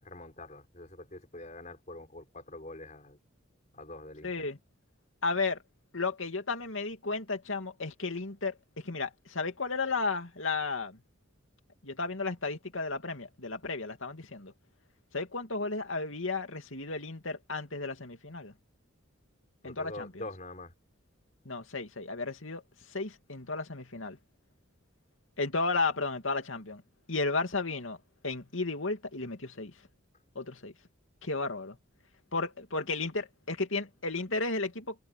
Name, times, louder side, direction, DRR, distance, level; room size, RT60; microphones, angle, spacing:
voice 1, 0.0-3.2 3.7-4.3 19.6-20.7, left 2 dB, 35° left, 5.0 m, -44 dB
voice 2, 4.2-4.6 5.2-5.6 5.9-11.0 11.8-14.5 15.1-18.5 19.6-20.1 21.4-22.6 22.9-24.2 25.4-26.8 27.1-28.0 28.2-29.7 30.3-30.7 31.2-31.8 32.3-35.0, left 3 dB, 75° left, 2.7 m, -33 dB
head